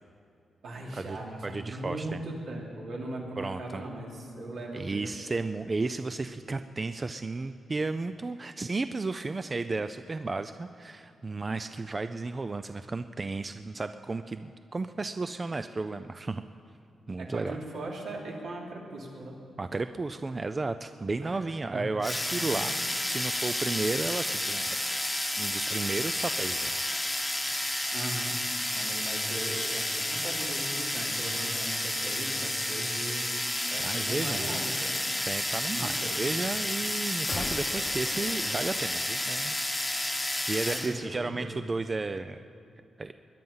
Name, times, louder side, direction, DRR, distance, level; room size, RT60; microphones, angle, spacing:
voice 1, 0.6-5.4 17.2-19.3 21.2-21.4 21.7-21.8 22.3-22.7 27.9-33.3 33.7-34.9 35.7-36.1 40.6-41.6, right 2 dB, 75° right, -2 dB, 2.9 m, -39 dB
voice 2, 1.4-2.2 3.4-3.8 4.7-16.4 17.1-17.6 19.6-25.0 25.4-26.8 33.8-34.5 35.3-39.6 40.5-42.4 43.0-43.1, right 3 dB, 25° right, 10 dB, 0.3 m, -33 dB
sound 1, 22.0-41.0, left 1 dB, 5° left, 1.0 m, -31 dB
sound 2, 37.3-39.6 39.9-40.0, left 4 dB, 45° left, 0.8 m, -41 dB
21.0 x 11.0 x 5.6 m, 2.5 s
wide cardioid pair, 125°, 0 cm